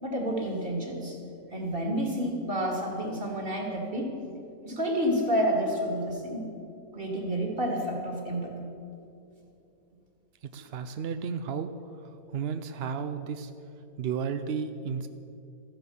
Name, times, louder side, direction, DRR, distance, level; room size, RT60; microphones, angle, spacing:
voice 1, 0.0-1.2 1.5-4.1 4.6-6.4 6.9-8.6, equal, 35° right, 1 dB, 2.3 m, -29 dB
voice 2, 10.4-11.7 12.0-13.5 14.0-15.1, right 6 dB, 65° right, 9 dB, 0.6 m, -33 dB
14.0 x 10.0 x 7.0 m, 2.7 s
omnidirectional pair, 1.7 m